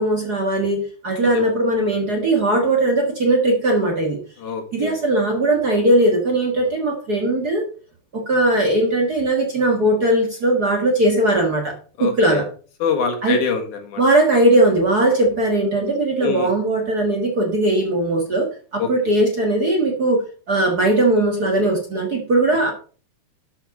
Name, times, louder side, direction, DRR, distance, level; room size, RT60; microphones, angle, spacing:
voice 1, 0.0-4.2 4.7-7.6 8.1-11.8 12.0-12.5 13.2-13.4 14.0-22.7, right 1 dB, 40° right, 2 dB, 1.7 m, -19 dB
voice 2, 4.4-5.0 12.0-12.4 12.8-14.0 16.2-16.5 18.8-19.1, left 6 dB, 75° left, 4 dB, 3.3 m, -25 dB
12.0 x 5.8 x 5.2 m, 0.40 s
omnidirectional pair, 3.6 m